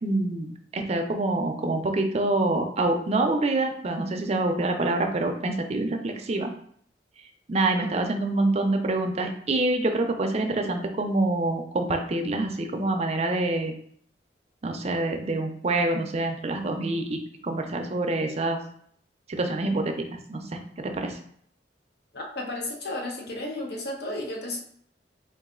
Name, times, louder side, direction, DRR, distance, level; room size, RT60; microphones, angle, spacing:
voice 1, 0.0-6.5 7.5-13.7 14.6-18.6 19.3-21.2, right 2 dB, 35° right, 5 dB, 0.5 m, -26 dB
voice 2, 22.1-24.6, left 1 dB, 65° left, 1 dB, 0.9 m, -33 dB
4.0 x 2.5 x 3.7 m, 0.64 s
head